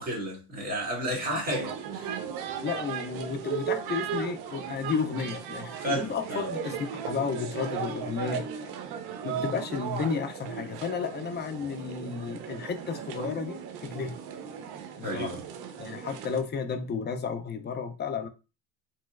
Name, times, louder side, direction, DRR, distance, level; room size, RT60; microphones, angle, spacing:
voice 1, 0.0-2.2 5.8-6.5 15.0-15.4, right 1 dB, 20° right, 1.9 m, -32 dB
voice 2, 1.1-1.4 2.6-8.5 9.2-14.2 15.0-15.3 15.8-18.3, left 5 dB, 25° left, 0.4 m, -32 dB
sound 1, 1.5-16.4, right 8 dB, 55° right, 0.7 m, -36 dB
3.0 x 3.0 x 2.4 m
supercardioid pair, 100°, 45 cm